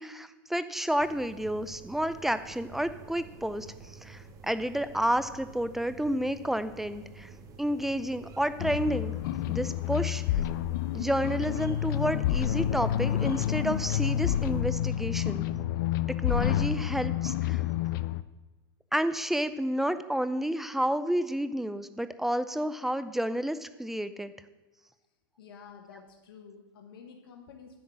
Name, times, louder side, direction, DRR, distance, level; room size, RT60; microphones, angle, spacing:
voice 1, 0.0-7.3 7.6-9.1 9.5-10.2 10.9-15.5 16.1-17.6 18.9-24.3, right 1 dB, ahead, 13 dB, 0.4 m, -30 dB
sound 1, 1.0-14.6, right 4 dB, 30° right, 0.8 m, -49 dB
sound 2, 8.6-18.2, left 12 dB, 60° left, 0.4 m, -29 dB
voice 2, 25.4-27.8, left 6 dB, 80° left, 2 dB, 1.2 m, -50 dB
10.0 x 3.8 x 7.3 m, 1.1 s
supercardioid pair, 130°, 12 cm